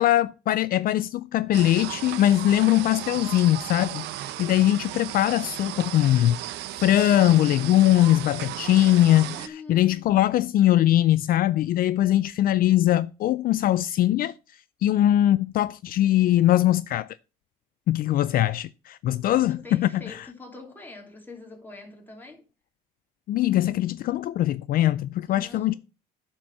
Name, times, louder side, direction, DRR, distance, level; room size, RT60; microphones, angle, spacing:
voice 1, 0.0-6.4 6.8-14.3 14.8-17.1 17.9-19.9 23.3-25.7, left 13 dB, 60° left, 0.4 m, -21 dB
sound 1, 1.5-9.5, right 14 dB, 85° right, 0.8 m, -35 dB
voice 2, 9.2-10.3 19.2-22.4 25.3-25.8, left 3 dB, 10° left, 2.8 m, -44 dB
9.9 x 4.4 x 7.3 m
cardioid pair, 110°, 17 cm